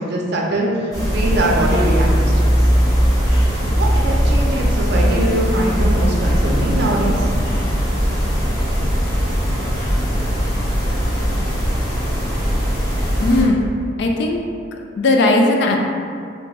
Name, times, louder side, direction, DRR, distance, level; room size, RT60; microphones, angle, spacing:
voice 1, 0.0-2.4 3.5-7.3, right 1 dB, 60° right, -2 dB, 0.5 m, -22 dB
sound 1, 0.9-13.4, equal, 20° left, 0.8 m, -19 dB
voice 2, 13.2-13.6 14.0-14.4 15.0-15.8, left 2 dB, 65° left, 2 dB, 0.3 m, -16 dB
2.5 x 2.3 x 3.9 m, 2.3 s
head